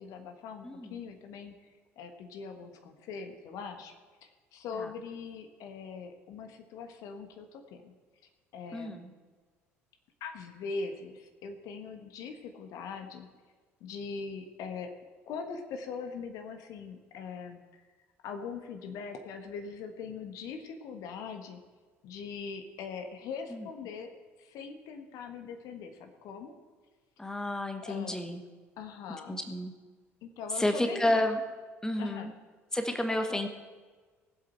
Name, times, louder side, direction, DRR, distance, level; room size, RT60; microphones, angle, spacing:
voice 1, 0.0-3.9 4.2-7.9 8.5-9.1 10.2-13.3 13.8-14.9 15.3-17.6 18.2-21.6 22.0-24.1 24.4-26.5 27.8-28.2 28.8-29.4 30.2-31.2 32.0-32.3 33.1-33.4, left 5 dB, 55° left, 6 dB, 1.3 m, -41 dB
voice 2, 0.6-1.0 4.7-4.9 8.7-9.1 23.5-23.7 27.2-28.4 29.3-29.7 30.5-31.4 31.8-32.3 32.7-33.5, left 1 dB, 10° left, 6 dB, 1.2 m, -31 dB
19.5 x 7.8 x 4.4 m, 1.4 s
figure-of-eight pair, 55°, 7 cm